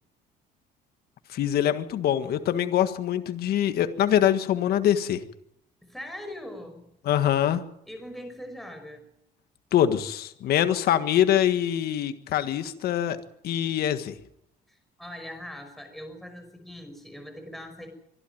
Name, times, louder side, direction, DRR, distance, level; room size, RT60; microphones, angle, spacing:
voice 1, 1.3-5.2 7.0-7.6 9.7-13.2 13.4-14.1, left 10 dB, 70° left, 10 dB, 1.6 m, -24 dB
voice 2, 5.8-6.9 7.9-9.1 14.7-17.9, left 1 dB, ahead, 5 dB, 5.7 m, -41 dB
25.0 x 12.0 x 9.2 m, 0.77 s
cardioid pair, 110°, 17 cm